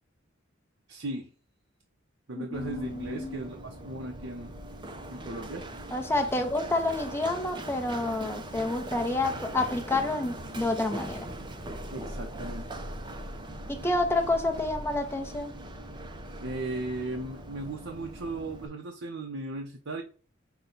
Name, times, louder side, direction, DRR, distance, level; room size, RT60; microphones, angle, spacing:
voice 1, 0.9-1.3 2.3-4.5 5.1-5.7 11.9-12.8 16.4-20.0, right 2 dB, 70° right, 0.7 m, -37 dB
voice 2, 2.3-3.4 5.9-11.3 13.7-15.5, left 2 dB, 10° left, 0.7 m, -29 dB
Run, 2.5-18.7, right 1 dB, 25° right, 0.5 m, -41 dB
5.9 x 2.3 x 3.8 m
head